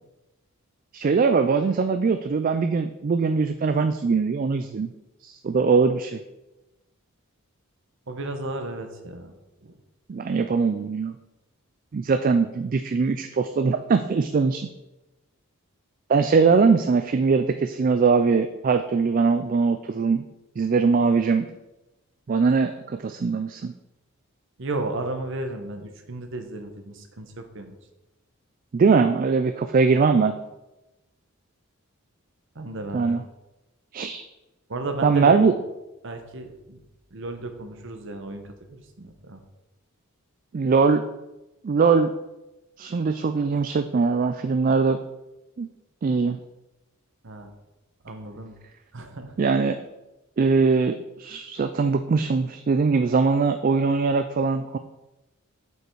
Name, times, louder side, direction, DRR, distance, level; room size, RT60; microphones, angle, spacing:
voice 1, 0.9-4.9 5.2-6.2 10.1-11.1 11.9-14.7 16.1-20.2 20.6-21.5 22.3-23.7 28.7-30.3 32.9-33.2 33.9-34.2 35.0-35.5 40.5-41.0 41.6-42.1 42.8-45.0 45.6-45.7 46.0-46.4 49.4-49.8 50.4-54.8, right 4 dB, 40° right, 9 dB, 0.3 m, -21 dB
voice 2, 8.1-9.8 24.6-27.8 32.5-33.2 34.7-35.5 36.0-36.8 37.1-39.4 47.2-47.5 48.0-48.6 48.9-49.3, right 2 dB, 60° right, 6 dB, 1.0 m, -34 dB
8.0 x 5.5 x 4.6 m, 1.0 s
head